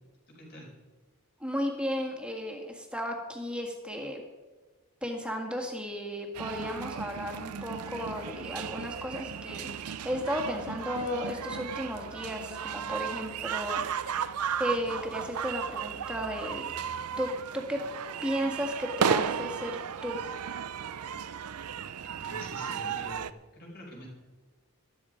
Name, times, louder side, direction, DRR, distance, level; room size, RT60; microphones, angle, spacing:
voice 1, 1.4-4.2 5.0-14.3 14.6-16.7 17.2-17.8 18.2-20.2, equal, 5° right, 2 dB, 1.8 m, -34 dB
sound 1, 6.3-23.3, right 7 dB, 90° right, 0.5 m, -34 dB
voice 2, 22.0-24.1, equal, 45° left, -2 dB, 5.2 m, -46 dB
13.0 x 12.0 x 5.1 m, 1.3 s
head